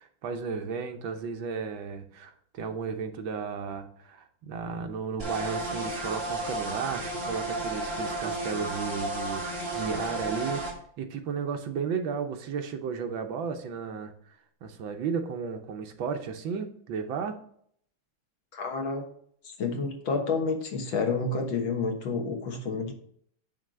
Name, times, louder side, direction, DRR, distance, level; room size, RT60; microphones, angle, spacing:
voice 1, 0.0-10.6 11.0-17.4, right 6 dB, 70° right, 6 dB, 1.6 m, -34 dB
sound 1, 5.2-10.7, right 2 dB, 30° right, 2.4 m, -33 dB
voice 2, 18.5-19.0 19.6-22.9, left 4 dB, 70° left, 3 dB, 2.1 m, -29 dB
9.0 x 3.3 x 6.1 m, 0.62 s
omnidirectional pair, 2.3 m